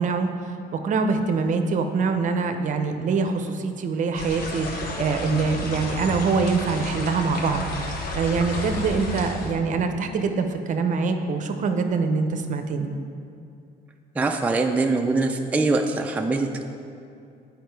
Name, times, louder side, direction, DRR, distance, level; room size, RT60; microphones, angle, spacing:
voice 1, 0.0-12.9, right 4 dB, 50° right, 7 dB, 0.6 m, -24 dB
sound 1, 4.1-9.5, left 1 dB, 60° left, 1.3 m, -32 dB
voice 2, 14.2-16.6, right 3 dB, 10° right, 3 dB, 0.4 m, -23 dB
8.5 x 5.0 x 4.6 m, 2.5 s
cardioid pair, 110°, 17 cm